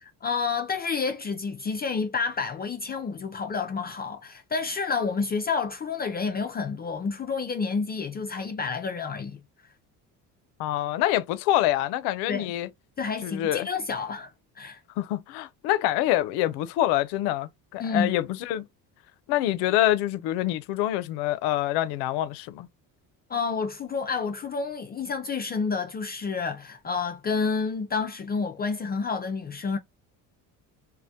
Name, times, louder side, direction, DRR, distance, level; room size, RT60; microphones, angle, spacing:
voice 1, 0.2-9.4 12.3-12.5 13.0-14.8 17.8-18.1 23.3-29.8, left 5 dB, 25° left, 0.3 m, -29 dB
voice 2, 10.6-12.7 13.2-13.7 15.0-18.7 19.3-22.7, left 13 dB, 80° left, 0.5 m, -26 dB
2.1 x 2.1 x 2.7 m
supercardioid pair, 85°, 40 cm